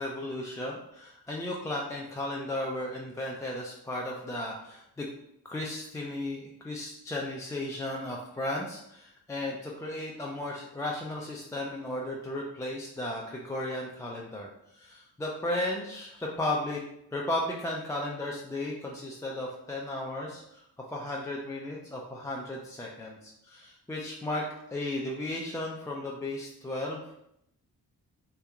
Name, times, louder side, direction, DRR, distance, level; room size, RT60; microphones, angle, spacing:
voice 1, 0.0-5.1 5.4-16.8 17.1-20.6 20.9-24.4 24.7-27.0, left 1 dB, 10° left, -3 dB, 0.3 m, -35 dB
2.9 x 2.3 x 2.3 m, 0.77 s
cardioid pair, 65°, 38 cm